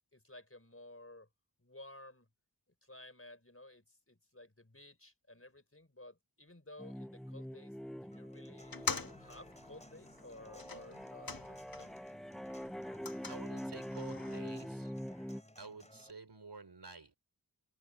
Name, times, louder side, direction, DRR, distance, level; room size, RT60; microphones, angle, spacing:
voice 1, 0.1-1.3 1.6-2.3 2.8-8.9 9.2-12.0, left 1 dB, 35° left, 5.3 m, -55 dB
sound 1, 6.8-15.4, equal, ahead, 0.4 m, -45 dB
Human voice / Acoustic guitar, 8.1-16.1, left 1 dB, 15° left, 3.4 m, -60 dB
sound 2, 8.6-12.1 12.4-14.4, left 4 dB, 60° left, 1.7 m, -44 dB
voice 2, 13.2-14.9 15.6-17.2, right 4 dB, 85° right, 4.4 m, -50 dB
wide cardioid pair, 45°, 39 cm